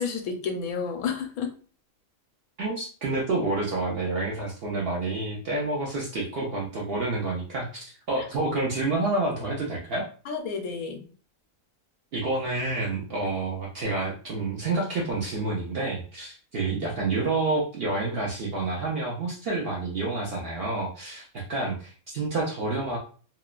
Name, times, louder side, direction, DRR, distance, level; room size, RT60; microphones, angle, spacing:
voice 1, 0.0-1.5 4.7-4.8 8.2-8.3 10.3-11.0, left 5 dB, 80° left, 4 dB, 1.0 m, -31 dB
voice 2, 2.6-10.0 12.1-23.0, right 2 dB, 60° right, -3 dB, 0.6 m, -29 dB
2.9 x 2.1 x 2.3 m, 0.39 s
omnidirectional pair, 1.5 m